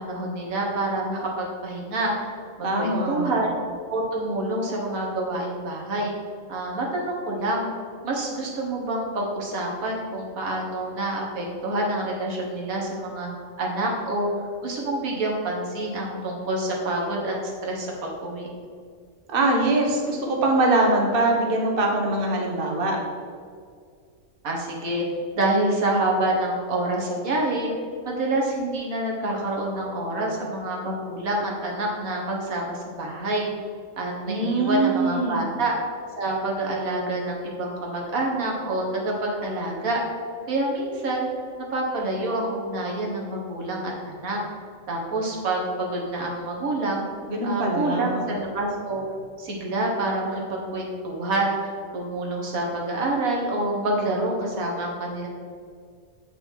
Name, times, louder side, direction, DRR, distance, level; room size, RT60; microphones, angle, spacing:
voice 1, 0.0-3.6 3.9-6.1 6.5-13.3 13.6-18.5 24.4-25.0 25.3-27.7 28.1-33.5 34.0-35.7 36.2-40.0 40.5-41.3 41.7-44.4 44.9-47.1 47.4-49.0 49.4-51.6 51.9-55.3, right 2 dB, 90° right, -2 dB, 1.8 m, -27 dB
voice 2, 2.6-3.3 19.3-23.0 34.3-35.5 47.3-48.3, right 2 dB, 45° right, 0 dB, 1.2 m, -23 dB
7.4 x 5.5 x 4.6 m, 2.1 s
omnidirectional pair, 1.4 m